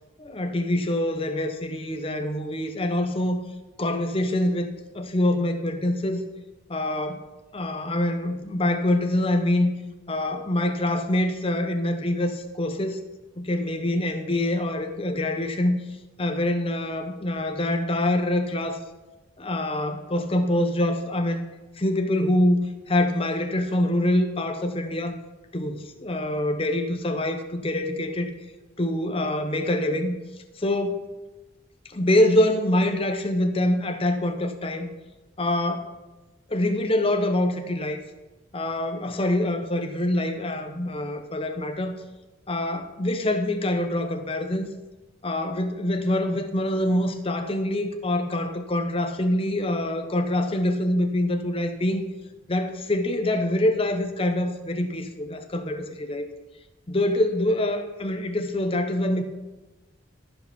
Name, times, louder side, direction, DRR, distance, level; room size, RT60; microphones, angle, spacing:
voice 1, 0.2-3.4 3.8-4.7 4.9-6.2 6.7-7.2 7.5-9.7 10.1-13.0 13.4-15.8 16.2-18.8 19.4-21.4 21.8-25.2 25.5-28.3 28.8-30.2 30.6-31.0 31.9-34.9 35.4-35.9 36.5-38.0 38.5-41.9 42.5-44.7 45.2-52.1 52.5-56.3 56.9-59.2, left 1 dB, 30° left, 7 dB, 0.8 m, -25 dB
14.0 x 5.1 x 5.8 m, 1.1 s
head